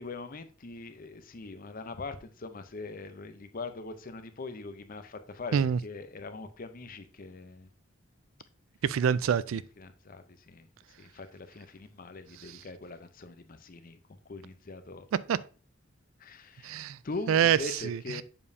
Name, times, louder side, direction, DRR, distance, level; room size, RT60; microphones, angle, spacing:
voice 1, 0.0-7.7 9.8-14.0 14.2-15.1 16.2-18.2, left 3 dB, 45° left, 0.6 m, -42 dB
voice 2, 8.8-9.6 12.5-12.6 15.1-15.4 16.6-17.0 17.3-17.6 17.8-18.2, right 8 dB, 80° right, 0.3 m, -26 dB
7.0 x 5.2 x 2.7 m
head